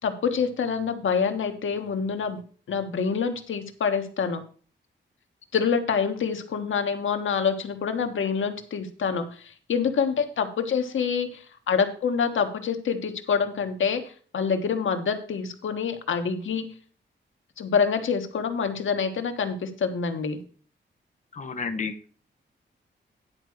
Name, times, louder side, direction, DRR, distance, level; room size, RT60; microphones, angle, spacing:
voice 1, 0.0-2.4 2.7-4.4 5.5-14.0 14.3-16.7 17.6-20.4, left 6 dB, 90° left, 6 dB, 1.4 m, -26 dB
voice 2, 21.3-22.1, left 5 dB, 40° left, 8 dB, 1.0 m, -32 dB
10.5 x 4.7 x 6.4 m, 0.41 s
wide cardioid pair, 180°, 20 cm